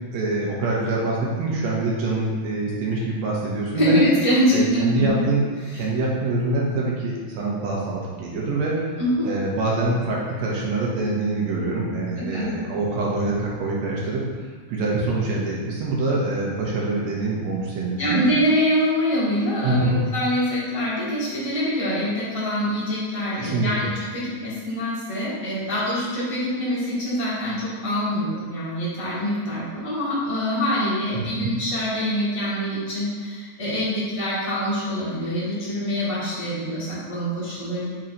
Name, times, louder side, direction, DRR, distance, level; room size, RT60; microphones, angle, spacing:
voice 1, 0.1-4.0 4.5-5.5 5.7-8.7 9.2-14.2 14.7-18.2 19.6-20.1 23.4-23.7 31.1-31.5, right 2 dB, 65° right, -4 dB, 2.2 m, -25 dB
voice 2, 3.7-5.1 9.0-9.3 12.2-12.5 18.0-37.9, equal, 15° left, -9 dB, 1.0 m, -24 dB
5.6 x 4.4 x 3.9 m, 1.5 s
omnidirectional pair, 3.5 m